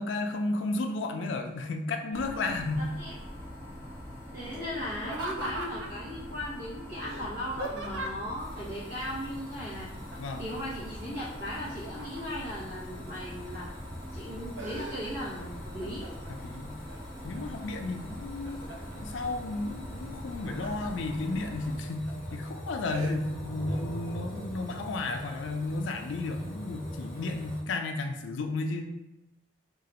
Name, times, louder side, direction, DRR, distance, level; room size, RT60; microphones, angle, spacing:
voice 1, 0.0-3.0 10.2-10.4 16.3-16.8 17.2-18.6 19.0-28.9, left 2 dB, 75° left, 5 dB, 0.4 m, -33 dB
sound 1, 2.1-21.8, equal, 10° left, 1.1 m, -43 dB
voice 2, 2.3-3.1 4.3-9.9 10.4-13.7 14.1-16.0, left 1 dB, 50° right, -9 dB, 0.9 m, -37 dB
Laughter, 5.0-6.1 7.0-8.4 10.1-10.6 10.9-12.5 13.1-13.7 14.1-15.4 15.8-16.4 16.9-17.6 18.1-19.0 20.1-20.9 21.4-21.5 22.1-22.3 22.9-23.1, right 2 dB, 75° right, 0.4 m, -40 dB
sound 2, 8.4-27.6, equal, 25° right, 0.9 m, -44 dB
3.0 x 2.4 x 2.9 m, 0.91 s
head